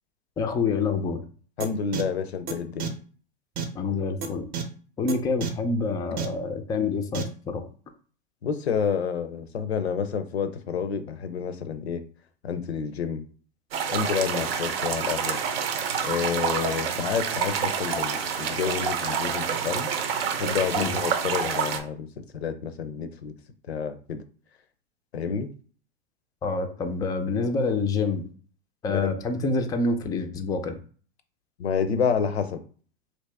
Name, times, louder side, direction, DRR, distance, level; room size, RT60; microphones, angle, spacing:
voice 1, 0.4-1.2 3.7-4.5 5.0-7.6 20.8-21.0 26.4-28.3 28.8-30.8, left 4 dB, 10° left, 6 dB, 0.4 m, -27 dB
voice 2, 1.6-2.9 8.4-12.0 12.4-13.2 13.9-15.4 16.0-19.9 20.4-22.1 22.3-23.3 23.7-24.2 25.1-25.5 28.9-29.1 31.6-32.6, left 6 dB, 90° left, 10 dB, 0.6 m, -29 dB
sound 1, 1.6-1.7 1.9-2.0 2.5-2.6 2.8-2.9 3.6-3.7 4.2-4.3 4.5-4.6 5.1-5.2 5.4-5.5 6.2-6.3 7.1-7.2, right 7 dB, 30° right, 0.7 m, -29 dB
sound 2, 13.7-21.8, right 7 dB, 70° right, 0.7 m, -28 dB
2.9 x 2.7 x 3.3 m, 0.42 s
hypercardioid pair, 100°, 31 cm